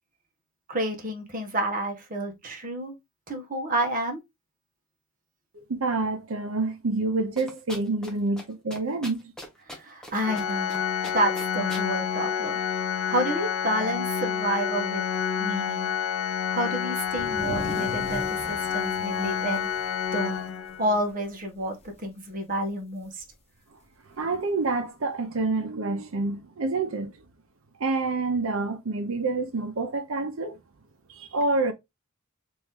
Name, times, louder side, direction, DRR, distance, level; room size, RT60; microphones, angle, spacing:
voice 1, 0.7-2.9 3.3-4.2 9.7-10.8 11.1-12.6 13.1-15.0 15.4-15.9 16.5-19.7 20.1-20.4 20.8-23.2, right 1 dB, 40° right, 1.0 m, -29 dB
voice 2, 5.5-9.3 24.2-27.2 27.8-30.6 31.1-31.7, right 3 dB, 80° right, 0.7 m, -28 dB
sound 1, 7.4-8.1 8.4-8.5 8.7-10.1 10.4-10.8 11.0-11.9, left 1 dB, 5° left, 0.9 m, -40 dB
Organ, 10.2-21.1, left 8 dB, 70° left, 0.5 m, -29 dB
sound 2, 17.0-20.7 21.1-21.2 21.6-22.1 23.2-23.3 24.3-24.4, equal, 30° left, 0.9 m, -40 dB
3.1 x 2.6 x 3.6 m
head